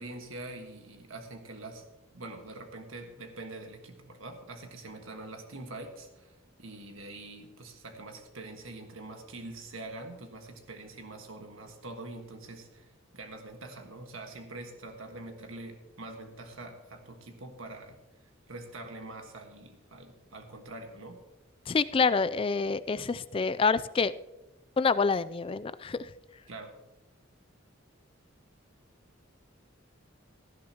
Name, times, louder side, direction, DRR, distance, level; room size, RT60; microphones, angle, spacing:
voice 1, 0.0-1.9 2.1-12.9 13.1-18.0 18.5-21.2 26.5-26.7, right 2 dB, 85° right, 4 dB, 1.5 m, -44 dB
voice 2, 21.7-24.1 24.8-26.1, left 4 dB, 25° left, 15 dB, 0.3 m, -27 dB
17.5 x 11.5 x 2.9 m, 1.0 s
head